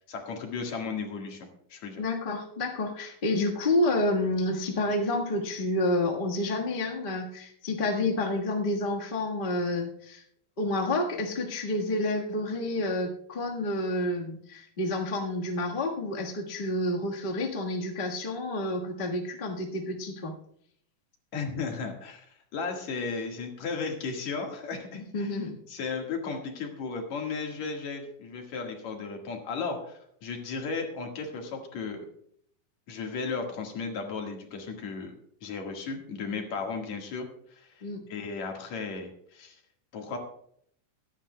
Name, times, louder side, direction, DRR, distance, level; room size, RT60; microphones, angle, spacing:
voice 1, 0.1-2.0 21.3-22.3 22.5-25.4 25.7-32.0 32.9-35.1 35.4-39.6 39.9-40.2, left 4 dB, 65° left, 2 dB, 2.9 m, -35 dB
voice 2, 2.0-10.2 10.6-20.3 24.9-25.6 37.8-38.0, left 1 dB, 40° left, 0 dB, 0.7 m, -29 dB
23.5 x 9.8 x 2.2 m, 0.66 s
omnidirectional pair, 3.5 m